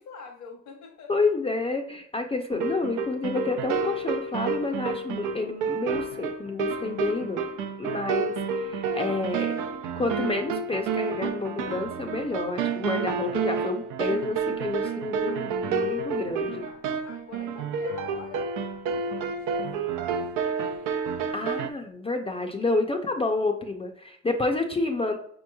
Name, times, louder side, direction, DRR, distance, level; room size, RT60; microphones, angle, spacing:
voice 1, 0.0-1.3 12.9-13.4 16.2-18.6 19.3-21.0, left 4 dB, 75° left, -3 dB, 1.0 m, -47 dB
voice 2, 1.1-7.5 7.8-9.6 9.9-16.6 21.3-25.2, left 3 dB, 20° left, 3 dB, 0.5 m, -29 dB
sound 1, 2.5-21.7, right 5 dB, 85° right, 0.5 m, -30 dB
5.0 x 3.0 x 2.2 m, 0.65 s
cardioid pair, 90°, 30 cm